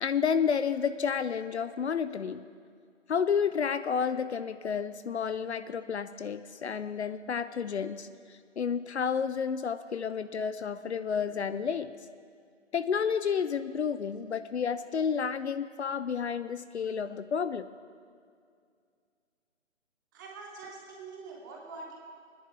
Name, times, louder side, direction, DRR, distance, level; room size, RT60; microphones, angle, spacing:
voice 1, 0.0-2.5 3.1-11.9 12.7-17.6, left 6 dB, 60° left, 13 dB, 0.6 m, -31 dB
voice 2, 20.1-21.9, right 4 dB, 15° right, -1 dB, 1.3 m, -44 dB
21.5 x 10.0 x 3.4 m, 2.2 s
hypercardioid pair, 160°, 37 cm